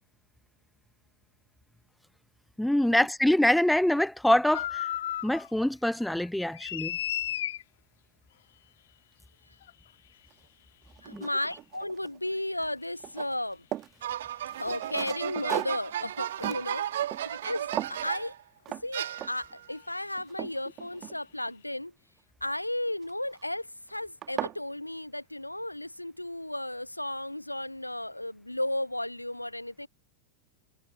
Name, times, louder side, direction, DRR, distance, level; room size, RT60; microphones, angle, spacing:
voice 1, 2.6-4.7 5.2-6.9 11.1-11.2, left 1 dB, ahead, 0.4 m, -24 dB
sound 1, 4.5-5.5 5.9-7.6 9.6-9.7 12.6-12.7 15.4-15.5 17.2-17.4 19.2-19.4 19.7-19.9, left 12 dB, 60° left, 1.4 m, -34 dB
sound 2, 10.3-10.4 10.9-12.3 12.6-14.0 14.5-17.5 17.7-18.1 18.7-18.9 19.2-19.5 20.0-21.5 23.0-23.4 23.9-24.0 24.2-24.6, right 13 dB, 30° right, 2.2 m, -38 dB
voice 2, 11.0-13.7 14.6-16.8 17.3-18.3 18.8-21.9 22.4-29.9, left 1 dB, 85° left, 0.5 m, -34 dB
sound 3, 14.0-18.4 18.9-19.7, right 11 dB, 60° right, 1.5 m, -35 dB
figure-of-eight pair, 90°, 0 cm